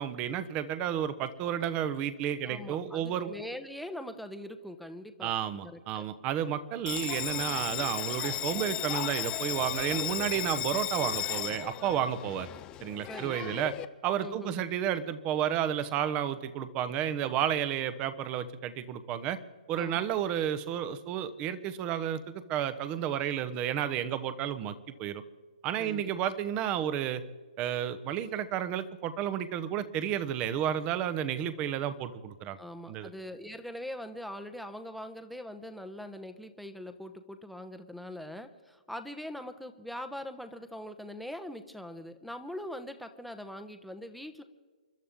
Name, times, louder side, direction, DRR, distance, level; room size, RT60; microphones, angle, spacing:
voice 1, 0.0-3.3 5.2-12.5 12.8-13.7 14.0-19.4 19.7-25.2 25.6-27.2 27.6-32.6 32.9-33.1, right 10 dB, 25° right, 12 dB, 1.0 m, -31 dB
voice 2, 2.4-5.3 5.6-6.1 13.1-13.7 14.2-14.6 19.7-20.0 25.8-26.1 32.6-44.4, left 1 dB, ahead, 9 dB, 1.0 m, -42 dB
Bell, 6.9-13.9, left 13 dB, 20° left, 0.6 m, -35 dB
28.5 x 12.5 x 3.7 m, 1.5 s
figure-of-eight pair, 135°, 4 cm